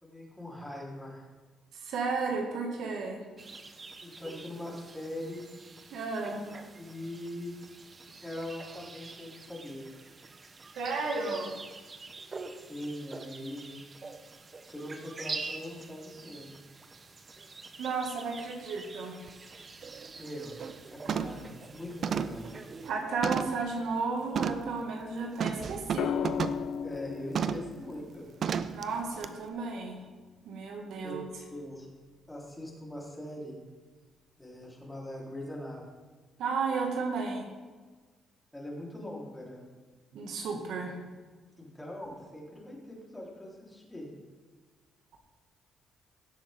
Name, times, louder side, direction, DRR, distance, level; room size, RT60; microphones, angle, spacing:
voice 1, 0.0-1.3 4.0-5.4 6.7-7.6 8.2-9.8 12.6-13.7 14.6-16.5 20.2-20.6 20.9-22.5 26.8-28.2 31.0-31.2 31.5-31.9 32.3-33.6 34.4-35.8 38.5-39.6 41.6-44.1, left 1 dB, 10° left, -4 dB, 3.8 m, -41 dB
voice 2, 1.7-3.2 5.9-6.4 10.8-11.5 17.8-19.2 22.9-26.2 28.7-30.0 30.5-31.2 36.4-37.5 40.1-41.0, right 4 dB, 80° right, 1 dB, 2.0 m, -33 dB
sound 1, 3.4-22.9, right 3 dB, 35° right, 0.9 m, -46 dB
sound 2, 19.3-19.4 19.8-20.1 20.4-20.8 21.1-21.5 22.0-23.7 24.3-24.7 25.4-26.7 27.3-27.7 28.4-28.8 29.2-29.3, right 7 dB, 55° right, 0.5 m, -33 dB
sound 3, 26.0-30.1 31.8-32.2, left 7 dB, 70° left, 0.4 m, -36 dB
17.0 x 7.5 x 3.7 m, 1.4 s
cardioid pair, 90°, 0 cm